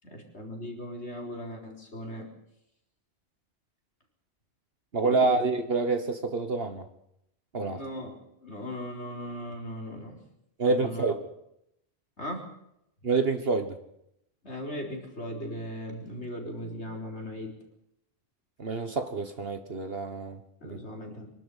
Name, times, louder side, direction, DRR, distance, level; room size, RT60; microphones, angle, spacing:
voice 1, 0.0-2.3 5.0-5.3 7.7-10.2 10.7-11.1 12.2-12.5 13.0-13.1 14.4-17.5 20.6-21.3, equal, 80° left, 2 dB, 4.6 m, -38 dB
voice 2, 4.9-6.9 7.5-7.8 10.6-11.3 13.0-13.8 18.6-20.8, right 3 dB, 60° right, 8 dB, 1.6 m, -27 dB
24.5 x 12.0 x 10.0 m, 0.79 s
omnidirectional pair, 1.1 m